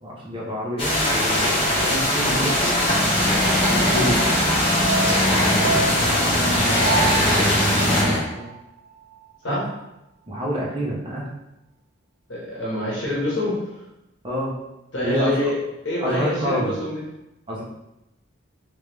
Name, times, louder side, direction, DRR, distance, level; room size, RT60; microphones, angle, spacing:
voice 1, 0.0-2.8 3.7-4.2 7.6-7.7 8.3-8.5 9.5-9.6 10.3-11.3 14.2-14.6 15.0-15.3 16.0-16.8 17.5-17.6, equal, 25° right, -5 dB, 0.8 m, -27 dB
sound 1, 0.8-8.0, left 1 dB, 30° left, 1.1 m, -21 dB
sound 2, 2.9-8.2, equal, ahead, 1.2 m, -23 dB
sound 3, 4.8-9.2 9.5-9.6, right 4 dB, 60° right, 0.8 m, -30 dB
voice 2, 7.2-7.6 9.4-9.7 12.3-13.8 14.9-15.6 15.8-17.0, left 1 dB, 60° left, -6 dB, 1.1 m, -27 dB
3.4 x 3.1 x 3.4 m, 0.91 s
head